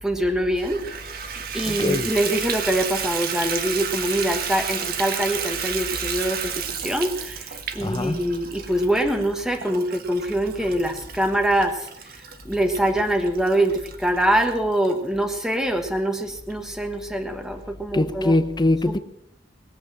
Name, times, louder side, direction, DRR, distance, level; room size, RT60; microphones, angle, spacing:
voice 1, 0.0-18.4 18.9-19.0, right 1 dB, 5° right, 1.2 m, -24 dB
Water tap faucet / Bathtub (filling or washing), 0.6-14.9 15.5-15.6 16.1-16.2 16.5-16.6, right 7 dB, 55° right, 1.4 m, -32 dB
voice 2, 1.6-2.1 7.8-8.2 17.9-19.0, left 2 dB, 25° left, 0.8 m, -22 dB
21.0 x 8.0 x 6.3 m
head